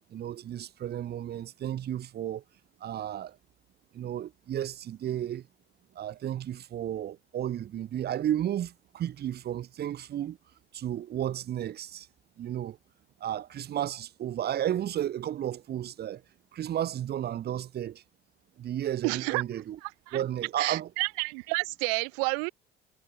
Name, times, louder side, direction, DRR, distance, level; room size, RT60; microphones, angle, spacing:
voice 1, 0.1-2.4 2.8-3.4 3.9-5.5 5.9-10.4 10.7-12.1 12.4-12.8 13.2-16.2 16.5-18.0 18.6-19.8 20.1-20.9, right 11 dB, 55° right, 7.6 m, -33 dB
voice 2, 19.0-19.4 19.8-20.2 20.6-22.5, right 40 dB or more, 80° right, 3.2 m, -30 dB
supercardioid pair, 80°, 20 cm